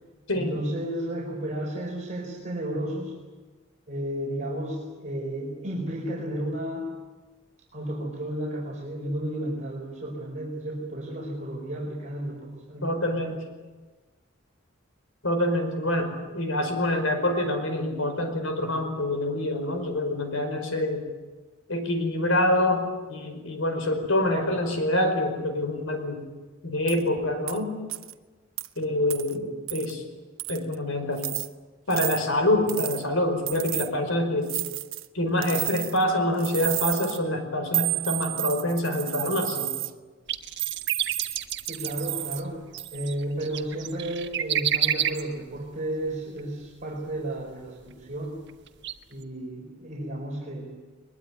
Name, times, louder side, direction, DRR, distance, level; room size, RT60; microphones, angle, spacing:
voice 1, 0.3-3.1 3.9-6.9 7.7-13.0 41.7-42.6 42.9-48.3 49.1-50.7, right 1 dB, 40° right, -2 dB, 4.4 m, -33 dB
voice 2, 12.8-13.4 15.2-16.1 16.3-21.0 21.7-26.2 26.6-27.8 28.8-30.0 30.5-31.3 31.9-34.5 35.1-39.7, left 1 dB, 85° left, 6 dB, 5.0 m, -26 dB
sound 1, 26.9-27.0 27.5-27.6 27.9-28.1 28.6-28.7 29.1-29.3 29.7-29.9 30.4-30.7 31.2-31.5 31.9-32.2 32.7-33.0 33.5-33.9 34.5-35.1 35.4-36.0 36.4-37.2 37.7-39.9 40.6-42.4 42.8-43.1, right 18 dB, 85° right, 1.0 m, -31 dB
sound 2, 40.3-45.6 46.4-46.5 47.9-48.0 48.5-48.9 49.2-49.3, right 10 dB, 60° right, 1.3 m, -29 dB
22.0 x 22.0 x 9.4 m, 1.3 s
head